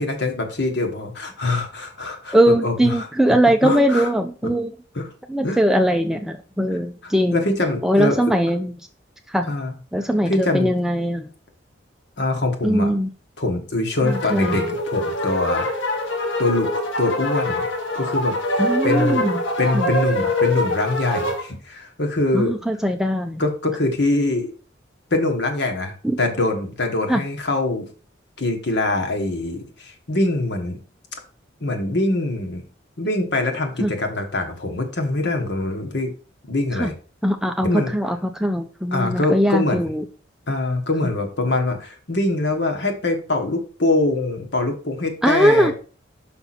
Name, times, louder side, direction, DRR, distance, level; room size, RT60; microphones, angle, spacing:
voice 1, 0.0-3.1 3.6-4.1 4.9-5.1 5.4-5.6 7.0-8.2 9.5-9.7 10.3-10.7 12.2-12.9 13.4-15.7 16.4-17.6 17.9-19.2 19.6-22.5 23.4-24.5 25.1-27.9 28.4-30.8 31.6-32.6 33.0-36.1 36.5-36.9 37.6-37.9 38.9-39.8 40.5-45.7, left 2 dB, 60° left, 4 dB, 1.5 m, -23 dB
voice 2, 2.3-4.7 5.3-7.4 7.8-8.7 9.3-9.5 9.9-11.3 12.6-13.1 14.0-14.7 18.6-19.4 19.7-19.9 22.3-23.4 26.0-26.2 27.1-27.2 33.8-33.9 36.7-36.9 37.2-40.0 45.2-45.7, equal, 5° right, 6 dB, 0.4 m, -20 dB
sound 1, 14.0-21.4, left 1 dB, 90° left, 1.9 m, -24 dB
5.9 x 5.5 x 4.2 m, 0.37 s
head